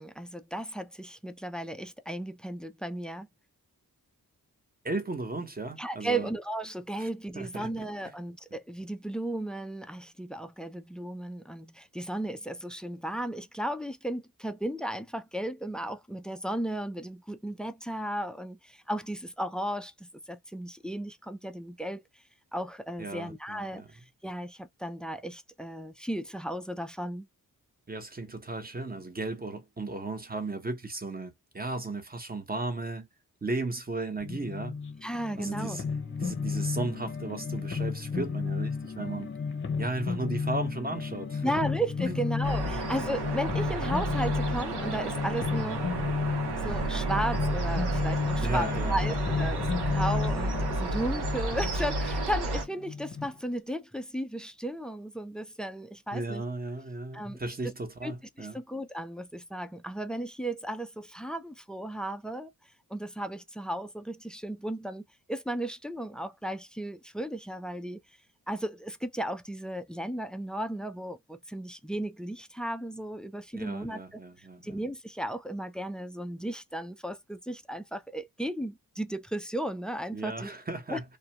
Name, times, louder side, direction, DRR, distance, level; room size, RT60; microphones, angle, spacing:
voice 1, 0.0-3.3 5.8-22.0 22.5-23.8 24.2-27.3 35.0-35.8 41.4-45.9 46.6-56.4 57.1-57.4 58.0-58.1 58.4-62.5 62.9-68.0 68.5-80.5 80.9-81.0, right 1 dB, ahead, 0.3 m, -35 dB
voice 2, 4.8-6.3 7.0-7.1 7.4-7.7 23.0-23.9 27.9-33.1 33.4-34.8 35.4-35.8 36.2-39.3 39.8-41.5 42.1-42.2 42.7-42.8 48.4-49.5 56.1-58.6 73.5-74.8 80.1-81.2, right 2 dB, 25° right, 0.8 m, -35 dB
sound 1, 34.2-53.3, left 5 dB, 30° left, 0.7 m, -33 dB
sound 2, 42.4-52.6, right 2 dB, 85° right, 0.8 m, -32 dB
2.3 x 2.1 x 2.8 m
cardioid pair, 70°, 38 cm